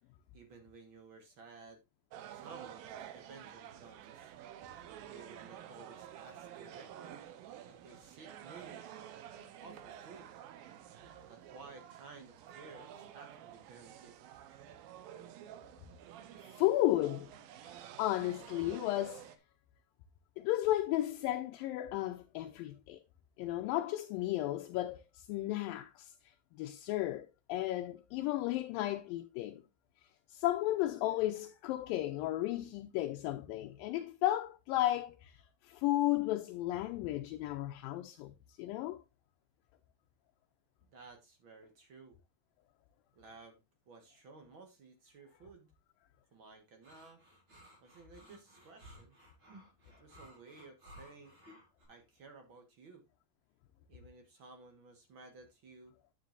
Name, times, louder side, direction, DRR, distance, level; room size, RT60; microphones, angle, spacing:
voice 1, 0.3-1.8 2.3-4.3 5.1-7.2 7.6-9.2 9.6-10.3 11.3-14.2 40.9-42.2 43.1-45.7 46.3-47.2 47.8-49.2 49.8-51.3 51.9-53.0 53.9-55.9, right 3 dB, 55° right, 1.4 m, -55 dB
sound 1, 2.1-19.4, right 10 dB, 80° right, 2.6 m, -50 dB
voice 2, 16.6-17.3 17.6-19.2 20.4-23.0 23.4-26.1 26.6-29.6 30.3-35.3 35.6-38.3 38.6-39.0, left 15 dB, 80° left, 2.2 m, -34 dB
sound 2, 46.8-51.8, equal, 30° right, 5.5 m, -57 dB
9.6 x 9.4 x 2.5 m
omnidirectional pair, 4.3 m